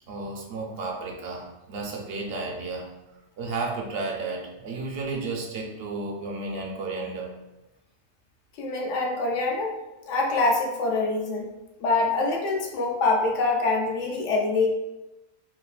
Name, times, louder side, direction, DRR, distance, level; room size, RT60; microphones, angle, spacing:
voice 1, 0.1-2.9 3.4-7.4, right 3 dB, 65° right, 0 dB, 0.7 m, -33 dB
voice 2, 8.6-9.8 10.1-11.5 11.8-14.7, left 3 dB, 80° left, 0 dB, 0.9 m, -25 dB
3.5 x 2.4 x 2.3 m, 0.98 s
omnidirectional pair, 1.3 m